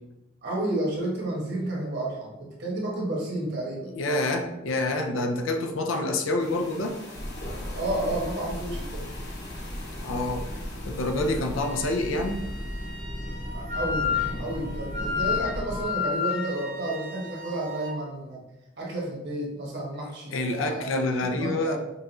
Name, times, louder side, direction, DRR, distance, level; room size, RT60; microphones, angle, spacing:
voice 1, 0.4-3.9 7.7-9.1 13.5-14.1 14.4-18.4 18.8-20.9 21.2-21.8, right 1 dB, 55° right, -3 dB, 1.3 m, -31 dB
voice 2, 4.0-7.0 10.0-10.4 10.8-12.4 20.3-21.8, left 2 dB, 80° left, 4 dB, 0.5 m, -27 dB
sound 1, 6.4-13.0, left 2 dB, 55° left, 1.1 m, -45 dB
sound 2, 7.1-15.8, equal, 40° left, 0.7 m, -36 dB
Wind instrument woodwind instrument, 11.6-18.0, left 6 dB, 35° right, 0.7 m, -32 dB
5.6 x 2.4 x 2.9 m, 0.94 s
head